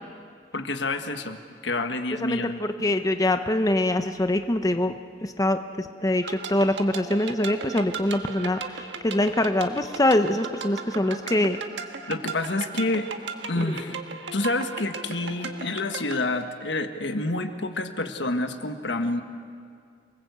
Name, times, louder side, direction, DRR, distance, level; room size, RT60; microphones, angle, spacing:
voice 1, 0.5-2.6 12.1-13.1 13.5-14.0 14.3-19.2, left 2 dB, 75° left, 7 dB, 1.6 m, -28 dB
voice 2, 2.2-11.6 13.6-13.7, left 1 dB, 20° left, 8 dB, 0.8 m, -24 dB
sound 1, 6.2-16.2, right 5 dB, 70° right, 1.6 m, -37 dB
28.0 x 19.5 x 8.2 m, 2.2 s
head